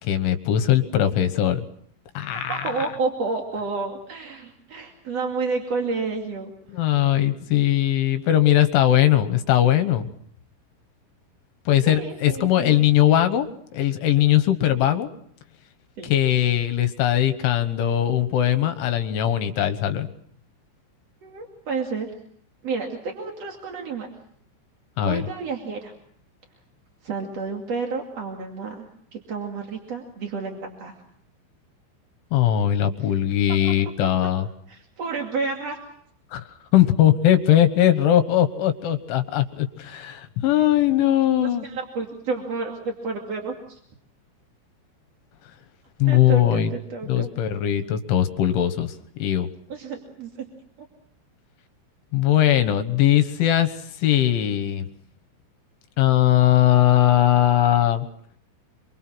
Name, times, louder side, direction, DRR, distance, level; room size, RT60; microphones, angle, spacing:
voice 1, 0.0-1.6 2.1-2.9 6.7-10.1 11.7-13.5 13.7-15.1 16.0-20.1 25.0-25.2 32.3-34.5 36.3-36.4 36.7-41.7 46.0-46.7 47.1-49.5 52.1-54.9 56.0-58.1, left 12 dB, 75° left, 9 dB, 3.5 m, -20 dB
voice 2, 2.5-6.5 11.9-12.8 16.0-16.1 21.2-22.1 22.6-24.1 25.0-25.9 27.0-28.9 29.1-31.0 34.7-35.8 41.6-43.8 46.0-47.3 49.7-50.3, right 4 dB, 40° right, 1 dB, 2.6 m, -30 dB
28.0 x 24.0 x 6.2 m, 0.64 s
omnidirectional pair, 5.9 m